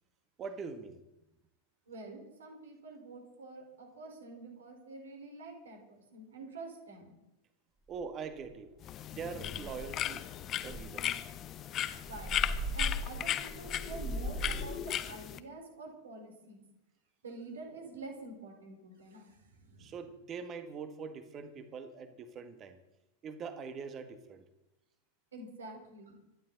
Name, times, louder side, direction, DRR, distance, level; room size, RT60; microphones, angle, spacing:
voice 1, 0.4-1.0 7.9-8.7 9.1-10.3 10.6-11.3 19.8-22.8 23.2-24.4, right 5 dB, 30° right, 9 dB, 1.8 m, -43 dB
voice 2, 1.9-7.1 11.9-12.4 12.7-16.6 17.2-20.0 25.3-26.2, right 3 dB, 65° right, 2 dB, 4.6 m, -47 dB
sound 1, 7.9-8.0 8.4-8.7 9.0-9.1 9.4-10.1 10.6-14.8, right 1 dB, 15° right, 2.5 m, -39 dB
sound 2, 8.8-15.4, left 11 dB, 30° left, 0.8 m, -36 dB
25.5 x 11.5 x 4.1 m, 0.95 s
figure-of-eight pair, 90°, 0 cm